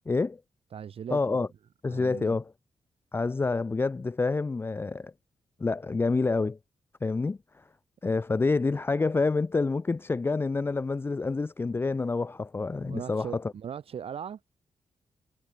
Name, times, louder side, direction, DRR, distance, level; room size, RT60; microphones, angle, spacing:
voice 1, 0.1-0.4 1.1-1.5 1.8-2.5 3.1-5.1 5.6-6.6 7.0-7.6 8.0-13.4, left 3 dB, 20° left, 0.5 m, -28 dB
voice 2, 0.7-1.4 1.9-2.4 12.8-14.4, right 8 dB, 60° right, 2.6 m, -39 dB
wide cardioid pair, 155°, 11 cm